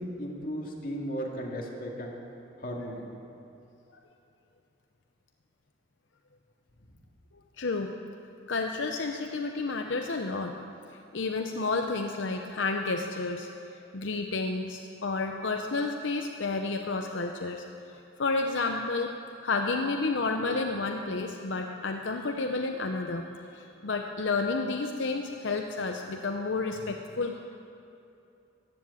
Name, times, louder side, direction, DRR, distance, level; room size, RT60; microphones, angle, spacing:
voice 1, 0.0-2.2 2.6-3.0, equal, 45° left, -1 dB, 2.2 m, -35 dB
voice 2, 7.6-7.9 8.5-10.5 11.1-13.5 13.9-19.1 19.4-23.2 23.5-27.4, left 3 dB, 80° left, 4 dB, 0.7 m, -31 dB
15.0 x 10.0 x 8.4 m, 2.7 s
head